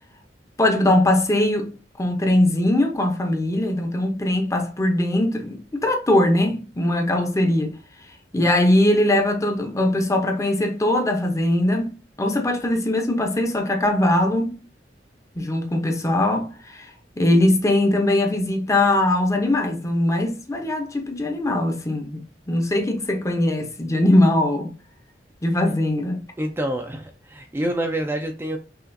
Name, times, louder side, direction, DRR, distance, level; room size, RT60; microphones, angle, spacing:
voice 1, 0.6-1.7 2.0-7.7 8.3-14.6 15.3-16.9 17.2-22.2 22.5-24.7 25.4-26.2, left 1 dB, 20° left, 0.7 m, -21 dB
voice 2, 26.4-28.6, right 1 dB, 15° right, 0.4 m, -27 dB
5.6 x 2.4 x 2.5 m
head